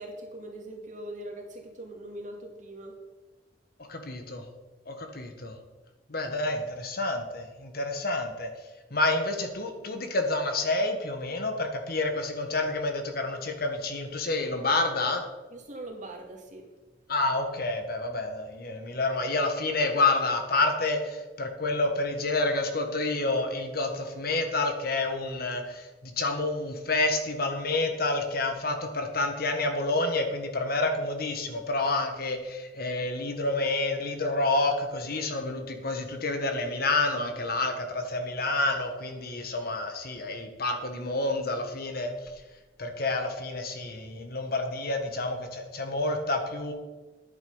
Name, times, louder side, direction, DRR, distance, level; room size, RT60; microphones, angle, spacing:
voice 1, 0.0-2.9 15.5-16.7, right 1 dB, 45° right, 1 dB, 2.3 m, -41 dB
voice 2, 3.9-4.4 4.9-5.6 6.1-8.5 8.9-15.2 17.1-42.1 42.8-46.7, left 2 dB, 55° left, 5 dB, 1.5 m, -29 dB
10.0 x 9.0 x 5.5 m, 1.2 s
head